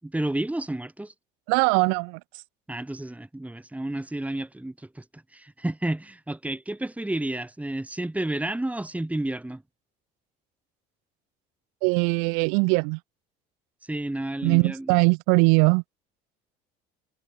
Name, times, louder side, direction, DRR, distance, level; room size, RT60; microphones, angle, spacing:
voice 1, 0.0-1.1 2.7-9.6 13.8-14.9, right 1 dB, 5° right, 6.4 m, -31 dB
voice 2, 1.5-2.2 11.8-13.0 14.4-15.8, right 40 dB or more, 80° right, 8.0 m, -21 dB
supercardioid pair, 100°, 21 cm